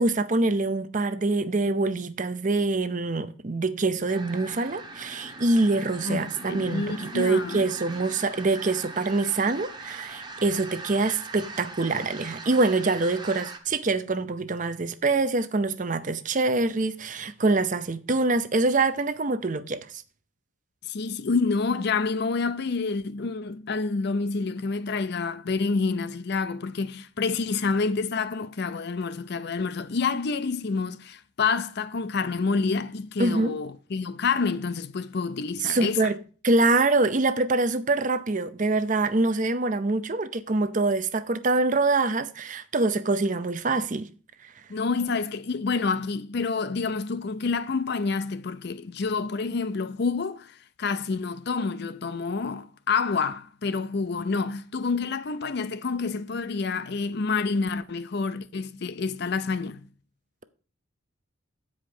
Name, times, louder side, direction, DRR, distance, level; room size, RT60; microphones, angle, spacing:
voice 1, 0.0-19.9 33.2-33.5 35.6-36.2 36.4-44.1 44.4-44.5, right 3 dB, 35° right, 0.6 m, -25 dB
sound 1, 4.1-13.6, right 3 dB, 20° right, 0.9 m, -41 dB
voice 2, 6.0-7.7 20.8-36.1 44.7-59.9, left 4 dB, 50° left, 0.5 m, -28 dB
8.5 x 5.1 x 5.9 m
head